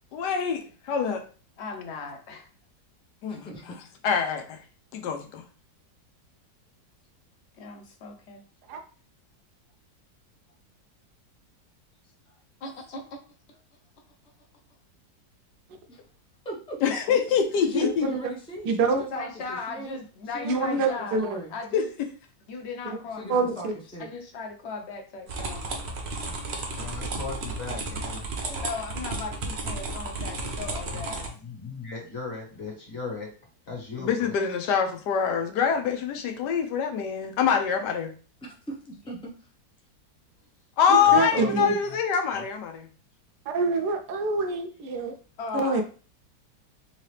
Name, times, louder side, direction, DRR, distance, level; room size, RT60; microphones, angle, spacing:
voice 1, 0.1-1.2 3.2-3.4 4.0-4.6 4.9-5.4 16.8-18.1 21.7-22.1 34.0-38.1 40.8-42.7, left 7 dB, 80° left, 5 dB, 1.3 m, -25 dB
voice 2, 1.6-2.5 7.6-8.4 12.6-13.1 19.1-21.2 21.5-21.9 22.5-23.4 24.0-25.6 28.6-31.3 42.4-42.5 45.4-45.8, left 4 dB, 55° left, 3 dB, 0.8 m, -37 dB
voice 3, 3.3-3.8 15.9-16.0 16.4-16.8 17.7-20.0 20.3-21.6 23.2-24.1 39.1-39.3 41.1-41.6, right 2 dB, 5° left, -2 dB, 0.4 m, -38 dB
voice 4, 17.8-18.2 18.7-19.0 20.4-21.4 22.8-23.0 23.3-23.7 28.4-28.6 40.9-41.8 43.5-45.1 45.5-45.8, right 3 dB, 75° right, 5 dB, 1.2 m, -26 dB
sound 1, 25.3-31.3, right 2 dB, 50° right, 0.8 m, -33 dB
voice 5, 26.7-28.2 30.3-33.3 33.7-34.4 35.3-35.4 40.4-40.5 41.0-42.0 42.3-42.4, left 4 dB, 40° left, -3 dB, 1.6 m, -38 dB
3.8 x 2.8 x 3.2 m, 0.38 s
omnidirectional pair, 1.8 m